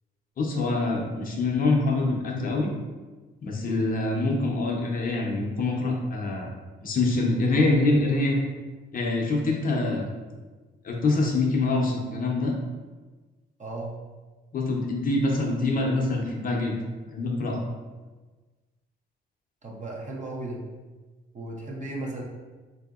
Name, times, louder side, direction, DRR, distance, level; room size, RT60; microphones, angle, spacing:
voice 1, 0.4-2.7 3.4-6.5 6.8-8.4 8.9-10.1 10.8-12.5 14.5-16.8 17.1-17.6, left 2 dB, 45° left, -1 dB, 0.7 m, -25 dB
voice 2, 13.6-13.9 19.6-20.6 21.3-22.2, right 2 dB, 35° right, -2 dB, 0.8 m, -35 dB
3.7 x 2.7 x 2.4 m, 1.3 s
cardioid pair, 90°, 20 cm